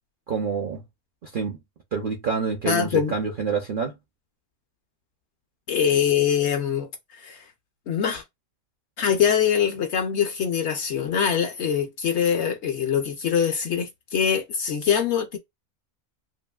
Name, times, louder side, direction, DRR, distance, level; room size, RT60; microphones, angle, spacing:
voice 1, 0.3-0.8 1.2-1.6 1.9-4.0, right 5 dB, 55° right, 0.6 m, -27 dB
voice 2, 2.6-3.1 5.7-7.5 7.9-8.2 9.0-15.4, left 8 dB, 65° left, 0.7 m, -23 dB
2.9 x 2.6 x 2.2 m
omnidirectional pair, 1.5 m